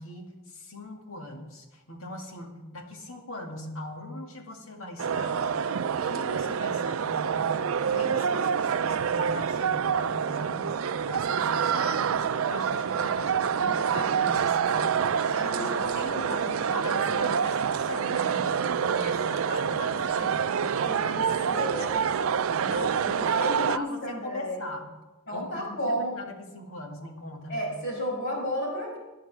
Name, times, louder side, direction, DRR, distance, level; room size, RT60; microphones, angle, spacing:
voice 1, 0.0-24.9 25.3-27.7, left 1 dB, 80° left, 2 dB, 2.2 m, -40 dB
sound 1, 5.0-23.8, right 7 dB, 75° right, 0.4 m, -27 dB
voice 2, 15.5-16.3 20.8-21.2 21.5-21.9 23.4-24.7 25.3-26.2 27.5-29.0, equal, 60° left, -2 dB, 5.2 m, -32 dB
19.5 x 11.0 x 3.5 m, 1.1 s
head